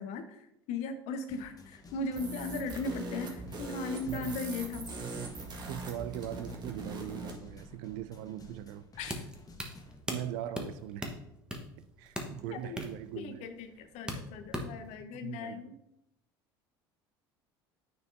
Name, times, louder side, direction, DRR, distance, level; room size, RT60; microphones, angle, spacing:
voice 1, 0.0-4.9 9.0-9.2 12.5-12.8 13.2-15.8, left 3 dB, 60° left, 0.9 m, -38 dB
sound 1, 1.3-10.0, left 2 dB, 30° left, 1.1 m, -54 dB
sound 2, 2.1-7.4, right 2 dB, 35° right, 1.5 m, -41 dB
voice 2, 4.1-4.4 5.0-5.4 5.7-8.9 10.1-11.1 11.8-13.5 15.0-15.8, right 12 dB, 65° right, 0.4 m, -40 dB
sound 3, 9.0-14.9, equal, 5° right, 1.2 m, -41 dB
9.4 x 4.5 x 2.7 m
hypercardioid pair, 70°, 13 cm